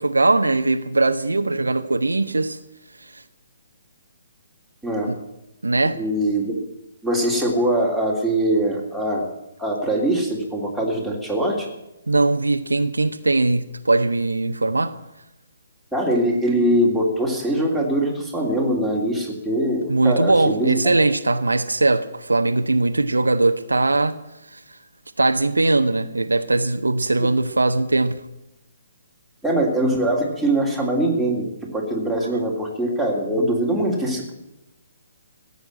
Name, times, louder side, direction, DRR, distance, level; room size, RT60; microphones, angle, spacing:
voice 1, 0.0-2.6 3.1-3.2 5.1-5.2 5.6-6.0 12.1-14.9 19.9-24.2 25.2-28.2, right 2 dB, 75° right, 0.8 m, -20 dB
voice 2, 6.0-6.6 7.0-9.3 9.6-11.7 15.9-20.9 27.2-27.3 29.4-31.5 31.7-34.3, right 1 dB, ahead, 3.1 m, -22 dB
15.0 x 8.1 x 9.9 m
figure-of-eight pair, 130°, 0 cm